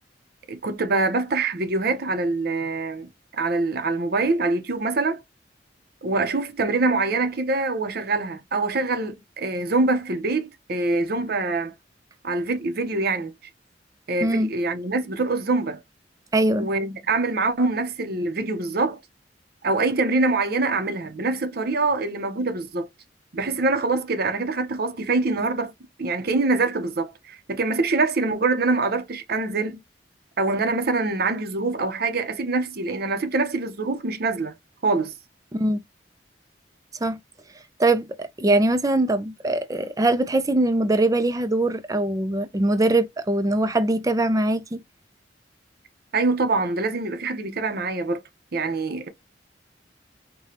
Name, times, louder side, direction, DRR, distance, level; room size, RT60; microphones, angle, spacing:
voice 1, 0.5-3.1 3.4-5.2 6.0-11.7 12.2-13.3 14.1-15.8 16.6-19.0 19.6-22.9 23.3-25.7 26.0-29.8 30.4-34.6 34.8-35.1 46.1-48.2 48.5-49.1, right 3 dB, 60° right, 0.7 m, -24 dB
voice 2, 16.3-16.7 35.5-35.8 37.0-37.2 37.8-44.8, right 2 dB, 20° right, 0.5 m, -22 dB
4.8 x 2.3 x 2.8 m
head